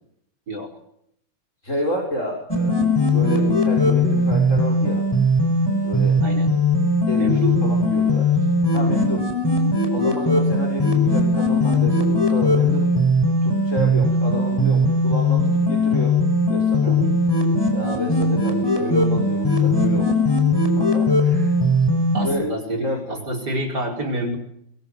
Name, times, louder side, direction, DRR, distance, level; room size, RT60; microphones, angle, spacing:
voice 1, 1.6-5.1 5.8-6.2 7.0-9.3 9.9-16.2 16.5-17.0 17.7-20.2 20.8-21.5 22.2-22.5 22.8-23.2, left 1 dB, 40° left, 0 dB, 6.4 m, -29 dB
sound 1, 2.5-22.3, left 1 dB, 10° left, 5.6 m, -19 dB
voice 2, 6.2-6.5 7.2-7.6 16.8-17.2 22.1-24.4, right 1 dB, 60° right, 1 dB, 5.5 m, -27 dB
25.0 x 24.0 x 7.9 m, 0.74 s
omnidirectional pair, 2.1 m